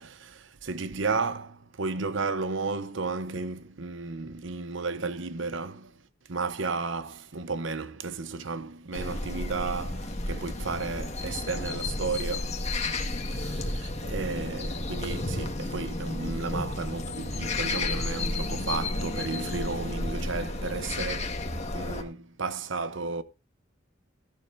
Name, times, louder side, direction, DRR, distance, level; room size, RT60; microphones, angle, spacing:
voice 1, 0.0-5.9 6.3-12.6 13.3-21.4 21.7-23.2, right 4 dB, 65° right, 0.9 m, -33 dB
sound 1, 8.9-22.0, left 2 dB, 35° left, 1.7 m, -32 dB
15.0 x 11.5 x 2.7 m
head